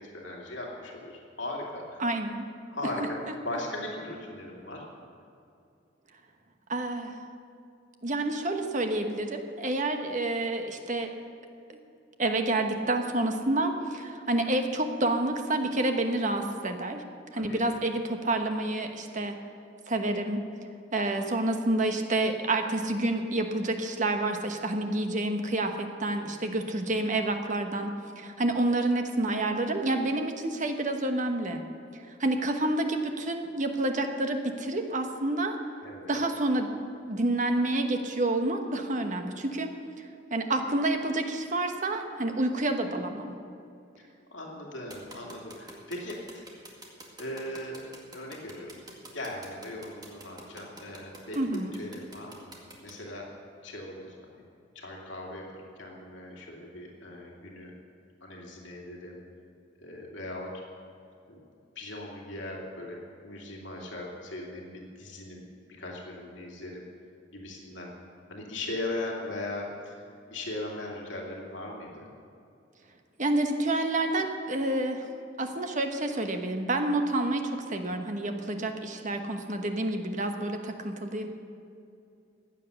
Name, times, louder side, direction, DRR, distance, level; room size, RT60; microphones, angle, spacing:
voice 1, 0.0-2.1 2.7-3.0 3.4-4.8 17.3-17.8 35.8-36.2 44.0-44.1 44.3-46.5 47.2-47.8 48.1-48.7 49.1-53.3 53.6-54.4 54.7-57.7 58.2-59.2 59.8-60.5 61.3-61.4 61.8-66.9 67.3-67.9 68.3-70.0 70.3-72.1, left 1 dB, 75° left, -2 dB, 2.6 m, -39 dB
voice 2, 2.0-2.4 6.7-7.2 8.0-11.1 11.7-11.8 12.2-17.0 17.3-19.3 19.9-20.4 20.9-31.6 32.2-35.6 36.1-36.7 37.1-39.7 40.3-43.3 51.3-51.7 73.2-75.1 75.4-81.3, right 2 dB, 40° right, 5 dB, 1.2 m, -28 dB
sound 1, 44.9-52.9, right 2 dB, 20° right, 2.0 m, -47 dB
15.0 x 9.4 x 6.9 m, 2.6 s
head